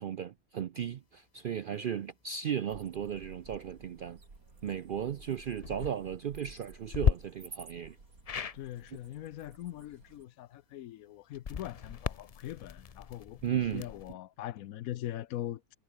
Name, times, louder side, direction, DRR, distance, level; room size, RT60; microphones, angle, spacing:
voice 1, 0.0-4.2 4.6-8.0 13.4-13.9, right 9 dB, 65° right, 0.5 m, -35 dB
sound 1, 2.7-10.2, right 3 dB, 90° right, 4.1 m, -53 dB
sound 2, 5.5-5.9 6.9-7.1 8.2-8.6 11.3-14.1, left 7 dB, 50° left, 0.4 m, -34 dB
voice 2, 8.5-15.8, left 13 dB, 80° left, 1.1 m, -42 dB
omnidirectional pair, 1.5 m